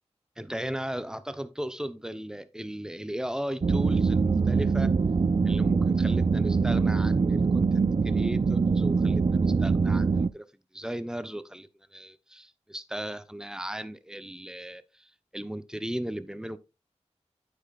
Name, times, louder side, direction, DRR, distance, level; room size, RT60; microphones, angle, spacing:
voice 1, 0.4-4.9 5.4-10.4 10.7-16.6, right 1 dB, 5° right, 0.9 m, -36 dB
sound 1, 3.6-10.3, right 4 dB, 50° right, 0.5 m, -23 dB
9.7 x 8.6 x 2.5 m
wide cardioid pair, 60°, 12 cm